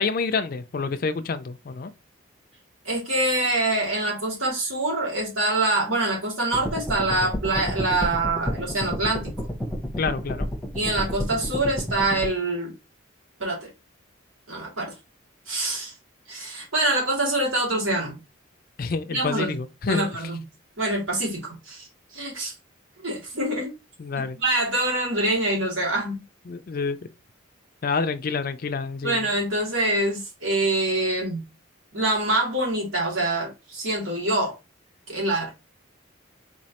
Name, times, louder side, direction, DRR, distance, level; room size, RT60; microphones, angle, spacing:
voice 1, 0.0-1.9 10.0-10.5 18.8-20.1 24.0-24.4 26.5-27.1 27.8-29.3, left 4 dB, 45° left, 0.4 m, -28 dB
voice 2, 2.8-9.3 10.7-12.7 13.4-13.7 14.5-14.9 15.5-15.9 16.3-18.2 19.1-19.5 19.8-20.4 20.8-21.9 22.1-22.5 23.0-23.7 24.4-26.2 29.0-31.4 31.9-34.6 35.1-35.5, right 2 dB, 80° right, 2.2 m, -25 dB
sound 1, 6.5-12.3, equal, ahead, 0.8 m, -30 dB
4.4 x 3.1 x 2.8 m
head